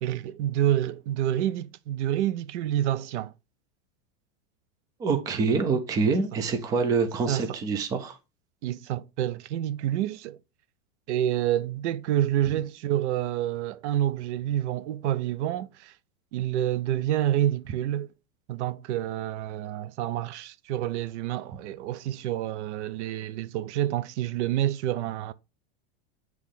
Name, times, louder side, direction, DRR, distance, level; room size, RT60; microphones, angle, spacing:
voice 1, 0.0-3.3 7.3-7.5 8.6-10.4 11.1-15.9 16.3-18.1 18.5-25.3, right 12 dB, 80° right, 0.6 m, -28 dB
voice 2, 5.0-8.2, right 4 dB, 10° right, 0.4 m, -26 dB
8.3 x 3.1 x 3.7 m
supercardioid pair, 160°, 34 cm